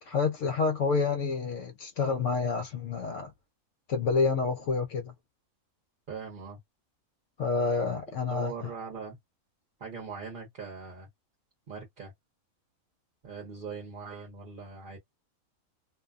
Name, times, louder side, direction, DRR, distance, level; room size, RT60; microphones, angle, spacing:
voice 1, 0.0-3.3 3.9-5.1 7.4-8.7, left 4 dB, 65° left, 0.8 m, -28 dB
voice 2, 6.1-6.6 8.3-9.2 9.8-11.1 11.7-12.1 13.2-15.0, right 5 dB, 40° right, 0.9 m, -41 dB
2.6 x 2.2 x 2.3 m
omnidirectional pair, 1.5 m